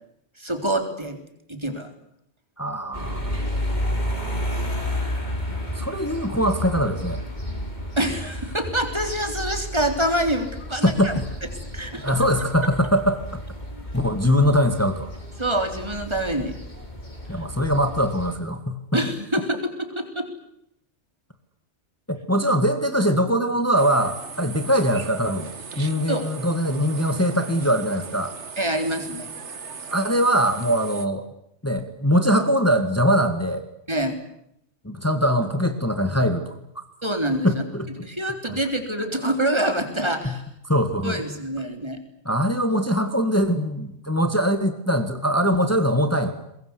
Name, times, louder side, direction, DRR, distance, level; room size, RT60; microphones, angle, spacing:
voice 1, 0.4-1.2 1.5-1.9 8.0-11.1 11.7-12.2 15.4-16.6 18.9-20.3 26.1-26.4 28.6-29.3 33.9-34.1 37.0-37.6 38.0-40.4 41.0-42.0, right 1 dB, 25° right, 6 dB, 3.8 m, -26 dB
voice 2, 2.6-3.4 5.8-7.2 10.8-11.2 12.0-13.2 13.9-15.1 17.3-19.0 22.1-28.4 29.9-31.2 31.6-33.7 34.8-36.8 37.4-37.9 40.2-40.3 40.6-41.2 42.3-46.3, equal, 15° left, 7 dB, 2.0 m, -22 dB
sound 1, 2.9-18.4, equal, 40° left, 4.5 m, -32 dB
sound 2, 23.8-31.1, right 5 dB, 80° right, 1.9 m, -38 dB
23.5 x 22.0 x 9.8 m, 0.77 s
omnidirectional pair, 1.2 m